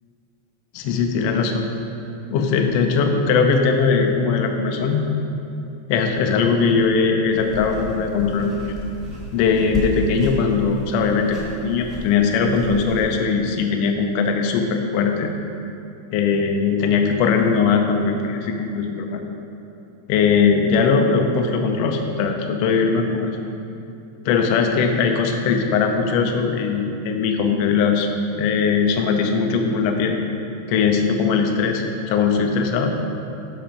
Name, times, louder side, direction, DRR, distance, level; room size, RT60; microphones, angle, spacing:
voice 1, 0.7-1.7 2.3-5.0 5.9-8.7 9.3-15.3 16.1-19.2 20.1-23.4 24.2-28.1 28.4-30.2 30.7-32.9, left 5 dB, 80° left, 4 dB, 1.3 m, -20 dB
sound 1, 7.3-13.0, left 1 dB, ahead, 0.5 m, -33 dB
7.4 x 5.1 x 5.1 m, 2.7 s
omnidirectional pair, 3.4 m